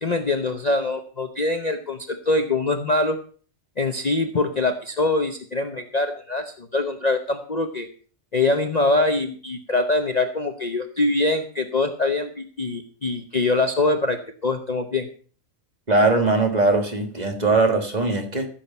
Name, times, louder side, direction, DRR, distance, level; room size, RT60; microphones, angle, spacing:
voice 1, 0.0-3.2 3.8-7.9 8.3-15.1, left 2 dB, 35° left, 6 dB, 0.8 m, -23 dB
voice 2, 15.9-18.5, right 3 dB, 30° right, 5 dB, 1.7 m, -20 dB
14.5 x 7.6 x 5.4 m, 0.43 s
omnidirectional pair, 1.4 m